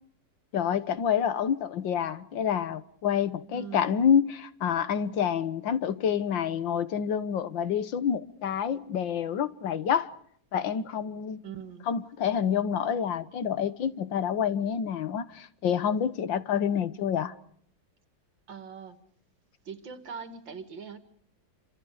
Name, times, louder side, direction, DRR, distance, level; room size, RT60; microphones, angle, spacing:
voice 1, 0.5-10.1 10.5-11.4 11.9-17.3, left 8 dB, 80° left, 1.9 m, -28 dB
voice 2, 3.5-3.9 11.4-11.9 18.5-19.0 19.7-21.0, right 6 dB, 80° right, 2.9 m, -41 dB
29.0 x 26.0 x 5.0 m
omnidirectional pair, 2.0 m